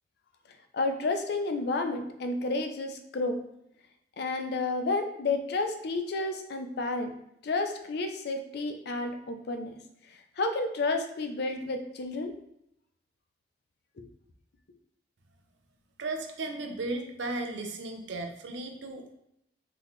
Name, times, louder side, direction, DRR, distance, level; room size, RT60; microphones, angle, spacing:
voice 1, 0.7-3.4 4.2-7.1 7.4-9.7 10.4-12.3 14.0-14.1, left 3 dB, 65° left, 6 dB, 0.5 m, -31 dB
voice 2, 16.0-19.1, right 2 dB, 80° right, 4 dB, 0.6 m, -35 dB
3.8 x 2.8 x 3.0 m, 0.80 s
head